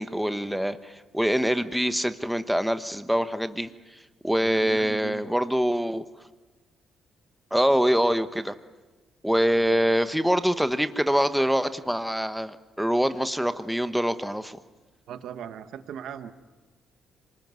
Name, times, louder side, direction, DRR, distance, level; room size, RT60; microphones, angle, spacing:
voice 1, 0.0-3.7 4.2-6.0 7.5-8.5 9.2-14.6, equal, ahead, 10 dB, 1.1 m, -24 dB
voice 2, 4.4-5.3 15.1-16.3, right 9 dB, 75° right, 10 dB, 1.2 m, -38 dB
25.5 x 20.5 x 9.5 m, 1.3 s
cardioid pair, 90°, 0 cm